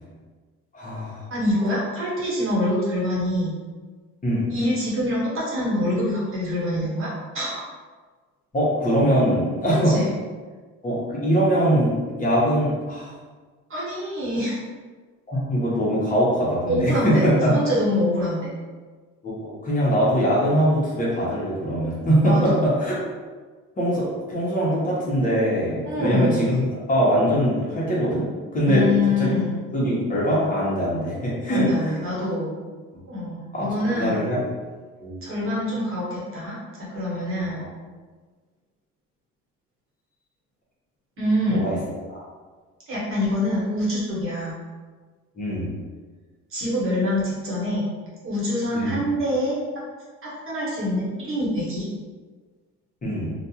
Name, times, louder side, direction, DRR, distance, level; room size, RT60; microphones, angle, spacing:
voice 1, 0.7-1.2 4.2-4.4 8.5-10.0 10.8-13.1 15.3-17.5 19.2-23.0 23.8-28.3 28.5-28.8 29.2-29.3 29.7-31.9 33.5-34.4 35.0-35.2 37.6-37.7 41.5-41.8 42.1-42.2 45.4-45.7 48.7-48.9 53.0-53.3, equal, 25° left, -7 dB, 1.0 m, -22 dB
voice 2, 1.3-3.5 4.5-7.1 7.3-7.6 9.8-10.2 13.7-14.6 16.7-18.4 22.3-22.6 25.8-26.5 28.6-29.6 31.5-32.6 33.1-34.3 35.2-37.6 41.2-41.7 42.9-44.5 46.5-47.9 48.2-49.6 50.2-51.9, left 1 dB, 45° right, -6 dB, 1.2 m, -25 dB
2.5 x 2.4 x 2.8 m, 1.4 s
cardioid pair, 100°, 30 cm